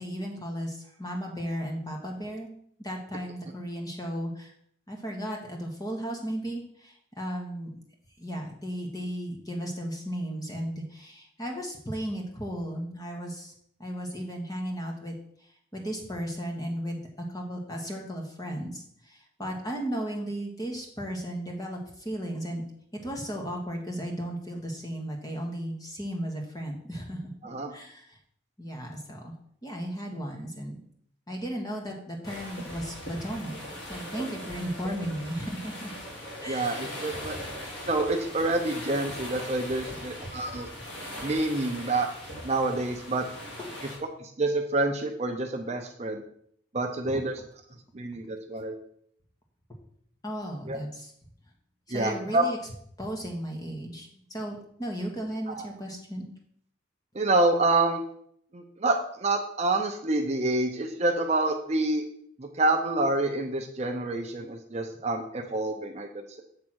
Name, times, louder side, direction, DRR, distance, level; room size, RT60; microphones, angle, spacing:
voice 1, 0.0-2.5 2.8-4.5 4.9-7.8 8.2-13.5 13.8-15.1 15.4-17.0 17.3-22.6 23.0-27.3 27.7-28.2 28.6-29.3 29.6-30.8 31.3-33.6 33.9-35.9 36.4-37.3 39.9-40.0 43.6-43.7 47.0-47.1 50.2-51.1 51.9-52.6 53.0-56.3, equal, 20° left, 1 dB, 1.3 m, -35 dB
sound 1, 32.2-44.0, equal, 65° left, 2.1 m, -40 dB
voice 2, 36.5-37.4 37.9-40.7 41.2-42.1 42.4-43.3 44.2-46.2 46.7-47.3 47.9-48.7 50.7-50.8 51.9-52.5 55.5-55.6 57.1-58.0 58.5-62.0 62.4-66.1, right 2 dB, 35° right, 4 dB, 0.6 m, -27 dB
7.5 x 3.5 x 6.2 m, 0.66 s
head